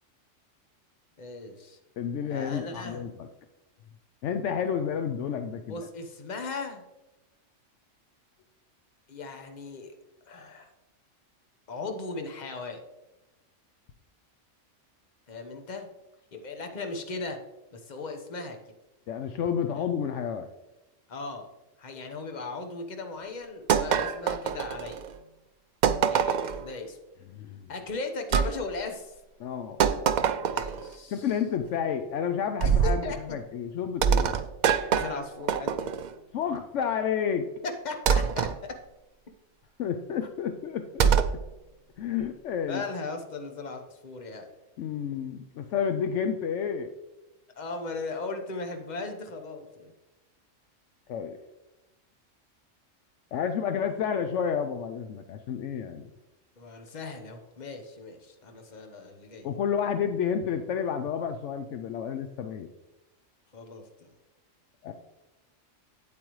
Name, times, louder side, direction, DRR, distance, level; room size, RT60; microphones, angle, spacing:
voice 1, 1.2-1.8 2.3-3.0 5.7-6.8 9.1-9.9 10.3-10.7 11.7-12.8 15.3-15.9 16.3-17.4 17.7-18.6 19.8-19.9 21.1-21.5 21.8-25.0 26.0-27.0 27.7-29.2 30.5-31.3 32.6-33.4 34.9-35.9 37.6-38.7 42.7-44.5 47.6-49.9 56.6-59.5 63.5-64.2, left 3 dB, 35° left, 5 dB, 1.0 m, -37 dB
voice 2, 2.0-3.3 4.2-5.8 19.1-20.5 27.3-27.7 29.4-29.8 31.1-34.3 36.3-37.5 39.8-41.1 42.0-42.8 44.8-46.9 51.1-51.4 53.3-56.1 59.4-62.7 64.8-64.9, left 7 dB, 70° left, 7 dB, 0.9 m, -30 dB
sound 1, 23.7-25.1 25.8-26.7 28.3-28.5 29.8-30.9 32.6-33.0 34.0-36.1 38.1-38.6 41.0-41.4, right 7 dB, 85° right, 0.4 m, -24 dB
8.7 x 8.4 x 3.1 m, 1.0 s
omnidirectional pair, 1.3 m